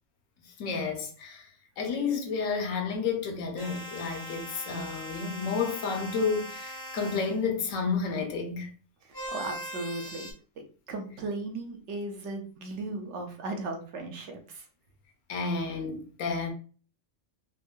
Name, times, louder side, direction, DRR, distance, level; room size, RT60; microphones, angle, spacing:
voice 1, 0.6-1.5 1.8-8.7 15.3-16.5, left 5 dB, 75° left, 1.1 m, -31 dB
sound 1, 3.6-7.4 9.1-10.3, equal, 20° right, 0.5 m, -40 dB
voice 2, 9.3-10.3 10.9-14.6, right 2 dB, 65° right, 1.0 m, -36 dB
3.7 x 2.6 x 2.3 m
omnidirectional pair, 1.4 m